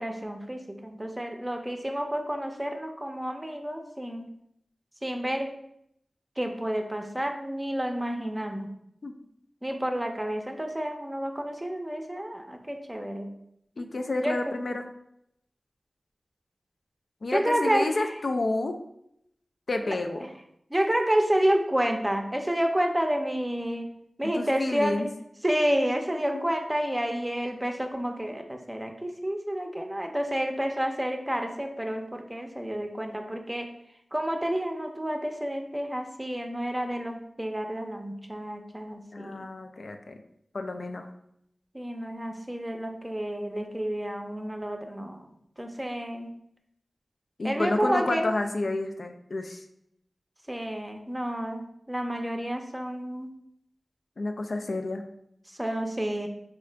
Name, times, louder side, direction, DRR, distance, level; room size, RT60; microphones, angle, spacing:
voice 1, 0.0-4.3 5.0-5.5 6.4-8.7 9.6-13.3 14.2-14.5 17.3-18.1 19.8-20.0 20.2-20.3 20.7-23.9 24.2-25.1 25.4-33.7 34.1-39.4 41.7-45.3 45.6-46.3 47.4-48.3 50.5-53.3 55.5-56.3, equal, 20° right, 4 dB, 0.5 m, -30 dB
voice 2, 13.8-14.9 17.2-18.8 19.7-20.3 24.2-25.1 26.3-26.4 39.1-40.2 40.5-41.1 47.4-49.6 54.2-55.0, left 2 dB, 70° left, 5 dB, 0.3 m, -30 dB
3.6 x 2.4 x 3.3 m, 0.75 s
cardioid pair, 40°, 0 cm